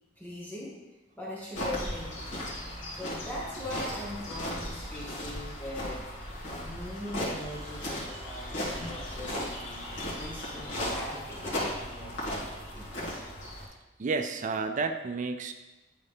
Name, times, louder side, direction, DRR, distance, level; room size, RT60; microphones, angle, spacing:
voice 1, 0.2-0.8 1.1-6.1 6.6-9.8 10.2-13.2, left 1 dB, 10° left, -6 dB, 1.2 m, -41 dB
sound 1, 1.5-13.7, left 1 dB, 80° left, 2.1 m, -36 dB
voice 2, 14.0-15.5, right 4 dB, 40° right, 7 dB, 0.4 m, -31 dB
10.5 x 3.9 x 3.6 m, 1.1 s
head